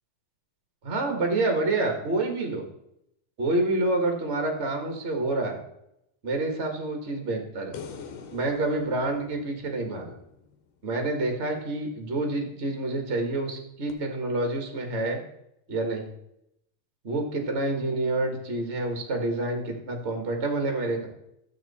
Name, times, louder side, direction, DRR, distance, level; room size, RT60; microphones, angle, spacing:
voice 1, 0.8-2.6 3.4-5.6 6.2-7.8 8.3-10.2 10.8-15.2 15.7-16.1 17.0-21.1, right 2 dB, 55° right, 3 dB, 0.7 m, -28 dB
sound 1, 7.7-11.1 13.9-14.0, left 6 dB, 75° left, 2.6 m, -44 dB
14.0 x 7.5 x 4.2 m, 0.80 s
omnidirectional pair, 4.1 m